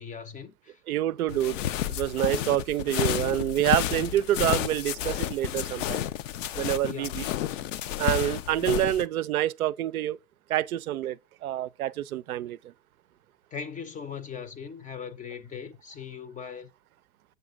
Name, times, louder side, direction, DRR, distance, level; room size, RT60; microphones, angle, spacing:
voice 1, 0.0-0.8 6.9-7.1 13.5-16.7, left 7 dB, 20° left, 0.6 m, -39 dB
voice 2, 0.9-1.6 1.9-6.0 6.6-7.2 8.0-10.2 10.5-12.6, right 13 dB, 75° right, 0.5 m, -27 dB
sound 1, 1.3-9.0, left 11 dB, 60° left, 0.6 m, -31 dB
7.7 x 6.9 x 3.5 m
figure-of-eight pair, 90°, 44 cm